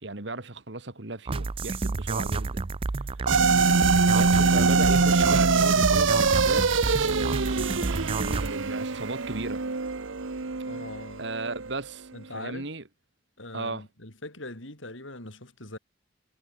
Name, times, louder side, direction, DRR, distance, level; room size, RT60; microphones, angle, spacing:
voice 1, 0.0-2.6 2.9-3.1 4.1-9.6 11.2-12.8 13.5-13.9, right 2 dB, 65° right, 1.9 m, -35 dB
sound 1, 1.3-8.5, right 3 dB, 30° right, 0.4 m, -30 dB
voice 2, 3.3-3.6 10.7-11.3 12.1-12.7 13.4-15.8, left 2 dB, 80° left, 6.2 m, -41 dB
sound 2, 3.3-11.8, right 4 dB, 80° right, 1.1 m, -23 dB
head